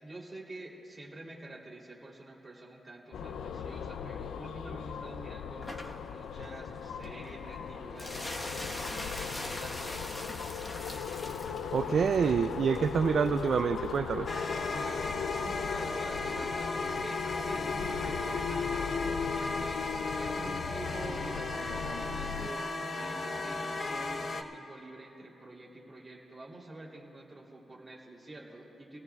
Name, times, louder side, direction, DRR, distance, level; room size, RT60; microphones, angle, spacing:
voice 1, 0.0-10.2 14.7-29.0, right 2 dB, 20° right, -3 dB, 3.2 m, -47 dB
sound 1, 3.1-22.5, left 7 dB, 85° left, 0.4 m, -38 dB
sound 2, 5.6-23.8, left 1 dB, 20° left, 1.2 m, -46 dB
voice 2, 11.7-14.3, right 6 dB, 55° right, 8 dB, 0.3 m, -27 dB
sound 3, 14.3-24.4, left 3 dB, 45° left, 0.9 m, -35 dB
30.0 x 17.5 x 2.4 m, 2.9 s
cardioid pair, 120°, 0 cm